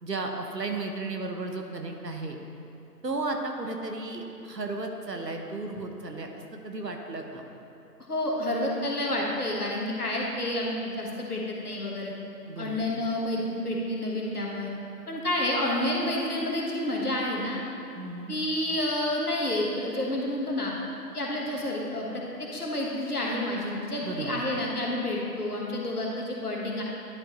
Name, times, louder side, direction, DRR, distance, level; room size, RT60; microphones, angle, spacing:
voice 1, 0.0-2.4 3.0-6.3 6.6-7.4 12.5-12.9 17.9-18.4 24.0-24.4, right 3 dB, 80° right, 3 dB, 1.0 m, -34 dB
voice 2, 8.1-12.1 12.6-14.7 15.1-17.6 18.3-20.7 21.1-26.8, left 1 dB, 65° left, -2 dB, 1.4 m, -29 dB
11.0 x 5.0 x 3.0 m, 2.8 s
figure-of-eight pair, 170°, 49 cm